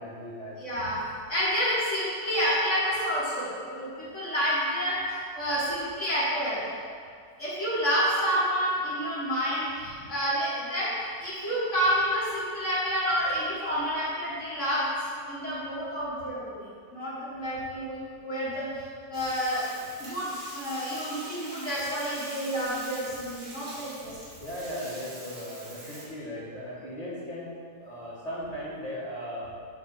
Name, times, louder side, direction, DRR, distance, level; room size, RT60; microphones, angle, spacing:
voice 1, 0.0-0.6 24.4-29.5, equal, 25° left, -8 dB, 2.3 m, -37 dB
voice 2, 0.6-6.6 7.4-14.9 15.3-19.7 20.0-24.1, equal, 50° left, -9 dB, 2.2 m, -29 dB
Bathtub (filling or washing), 19.1-26.1, right 1 dB, 85° right, 2.5 m, -44 dB
8.4 x 4.2 x 7.2 m, 2.1 s
omnidirectional pair, 1.7 m